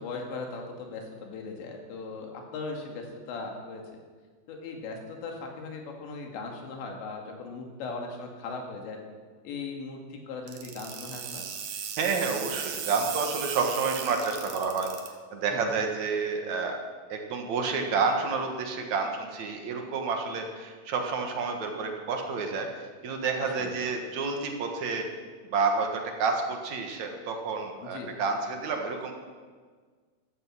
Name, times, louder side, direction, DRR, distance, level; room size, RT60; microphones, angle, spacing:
voice 1, 0.0-4.0 4.5-9.0 9.4-11.5 15.5-15.8 23.4-23.7 27.8-28.1, left 3 dB, 90° left, 2 dB, 4.4 m, -38 dB
sound 1, 10.5-15.1, right 8 dB, 85° right, 3.7 m, -36 dB
voice 2, 12.0-14.9 15.3-16.8 17.1-25.1 25.5-29.1, right 4 dB, 55° right, 3 dB, 2.2 m, -29 dB
14.5 x 13.0 x 6.2 m, 1.5 s
omnidirectional pair, 5.0 m